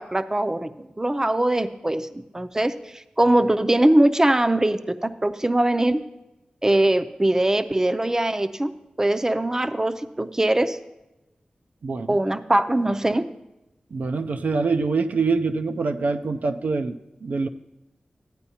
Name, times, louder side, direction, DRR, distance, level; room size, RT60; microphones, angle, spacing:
voice 1, 0.0-6.0 6.6-8.7 9.0-10.8 12.1-13.3, right 1 dB, 20° right, 10 dB, 0.5 m, -22 dB
voice 2, 11.8-12.2 13.9-17.5, right 4 dB, 75° right, 6 dB, 0.4 m, -25 dB
13.5 x 8.9 x 2.8 m, 0.96 s
cardioid pair, 50°, 3 cm